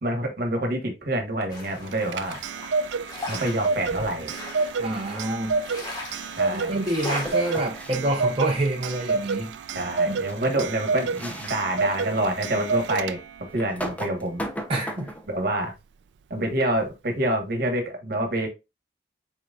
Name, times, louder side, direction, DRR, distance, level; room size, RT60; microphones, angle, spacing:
voice 1, 0.0-2.4 3.3-4.3 6.4-6.8 9.7-13.2 13.5-14.4 15.3-15.7 16.3-18.5, right 1 dB, 60° right, 1.3 m, -27 dB
sound 1, 1.5-7.7, left 1 dB, 25° left, 1.5 m, -38 dB
Clock, 1.9-13.5, right 4 dB, 85° right, 0.3 m, -29 dB
sound 2, 3.9-4.4 7.2-7.9 9.8-9.9 10.3-10.4 11.1-11.6 12.2-12.3 13.6-15.3, equal, 10° left, 0.6 m, -35 dB
voice 2, 4.8-5.6 6.5-9.6 10.1-10.2 14.7-15.1, right 1 dB, 35° right, 0.7 m, -27 dB
4.5 x 3.9 x 2.4 m
head